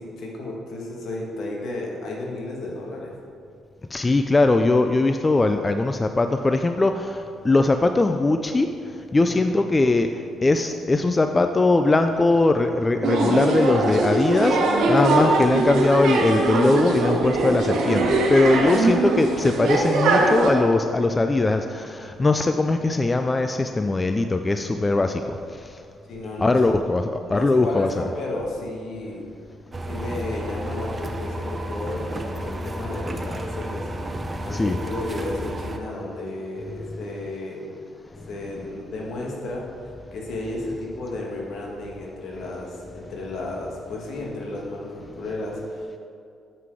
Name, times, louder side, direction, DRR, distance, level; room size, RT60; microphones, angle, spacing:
voice 1, 0.0-3.1 9.2-9.4 26.1-26.6 27.3-29.2 29.9-33.9 34.4-37.7 38.3-46.0, left 2 dB, 70° left, -1 dB, 1.7 m, -33 dB
voice 2, 3.9-8.7 9.1-10.1 10.4-25.7 26.4-28.0 34.5-34.8, left 2 dB, 25° left, 7 dB, 0.3 m, -21 dB
sound 1, 13.0-20.5, right 2 dB, 80° right, 1.2 m, -21 dB
sound 2, 29.7-35.8, right 1 dB, 25° right, 0.7 m, -32 dB
7.6 x 5.9 x 4.8 m, 2.5 s
cardioid pair, 90°, 0 cm